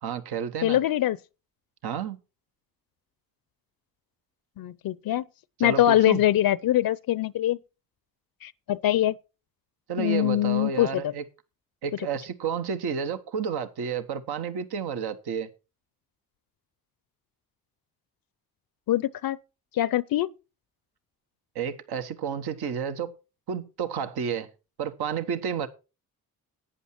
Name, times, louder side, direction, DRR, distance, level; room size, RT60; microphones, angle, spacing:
voice 1, 0.0-0.8 1.8-2.2 5.6-6.2 9.9-11.2 11.8-15.5 21.5-23.1 23.5-24.5 24.8-25.7, right 7 dB, 65° right, 1.2 m, -31 dB
voice 2, 0.6-1.2 4.6-5.2 5.6-7.6 8.4-9.1 10.0-11.1 18.9-19.4 19.7-20.3, left 13 dB, 55° left, 0.6 m, -23 dB
11.0 x 8.8 x 4.5 m
hypercardioid pair, 45°, 42 cm